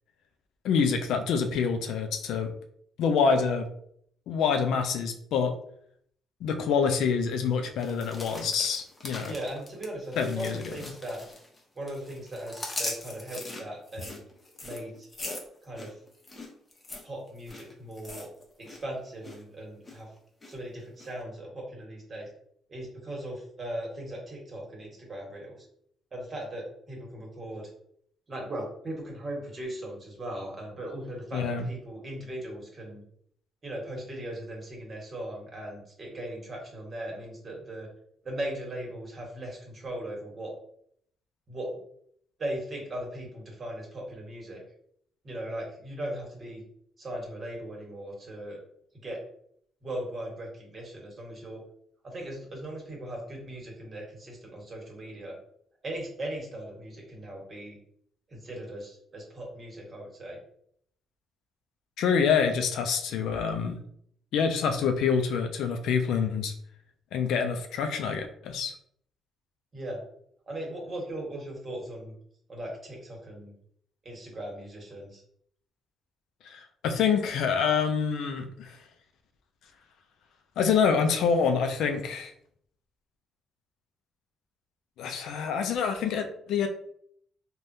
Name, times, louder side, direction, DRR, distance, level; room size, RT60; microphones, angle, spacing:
voice 1, 0.6-2.5 3.0-3.7 4.3-5.6 6.4-9.3 10.2-10.7 31.3-31.6 62.0-63.8 64.3-66.5 67.1-68.7 76.4-78.8 80.6-82.3 85.0-86.7, left 6 dB, 80° left, 6 dB, 0.4 m, -26 dB
sound 1, 7.8-11.6 11.9-18.8 19.1-19.4 19.8-20.5 21.0-21.1, left 2 dB, 25° left, 0.8 m, -41 dB
voice 2, 9.2-11.2 11.7-14.2 14.6-15.1 15.6-15.9 17.0-18.3 18.6-20.1 20.5-22.3 22.7-25.6 26.1-27.7 28.3-33.0 33.6-37.9 38.2-40.5 41.5-41.8 42.4-44.6 45.2-46.6 47.0-48.6 49.0-49.2 49.8-51.6 52.0-55.4 55.8-57.8 58.3-60.4 69.7-70.0 70.5-72.1 72.5-73.5 74.0-75.2, right 1 dB, 40° right, -1 dB, 1.2 m, -38 dB
3.4 x 2.2 x 2.6 m, 0.67 s
cardioid pair, 90°, 0 cm